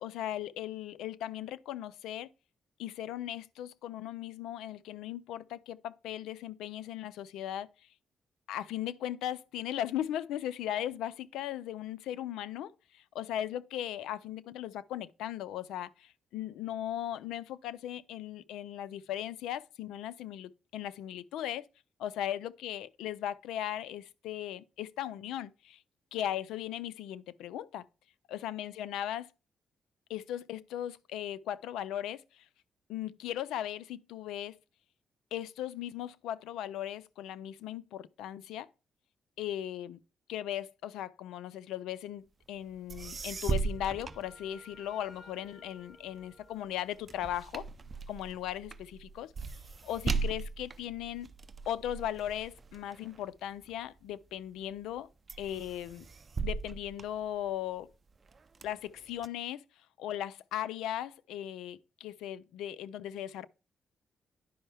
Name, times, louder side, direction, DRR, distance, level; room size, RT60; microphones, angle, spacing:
voice 1, 0.0-2.3 2.8-7.7 8.5-12.7 13.1-21.7 22.0-25.8 26.1-27.9 28.3-29.3 30.1-32.5 32.9-34.6 35.3-38.7 39.4-40.0 40.3-47.7 48.1-49.3 49.8-51.3 51.7-55.1 55.4-56.1 56.4-57.9 58.6-59.6 60.0-63.5, left 11 dB, 85° left, 0.4 m, -38 dB
sound 1, 42.6-42.7 42.9-45.0 45.5-54.1 54.6-55.0 55.3-57.8 58.3-59.3, right 4 dB, 45° right, 0.5 m, -38 dB
Wind instrument woodwind instrument, 43.4-47.3, left 2 dB, 40° left, 4.8 m, -57 dB
10.0 x 5.3 x 3.4 m
supercardioid pair, 50°, 0 cm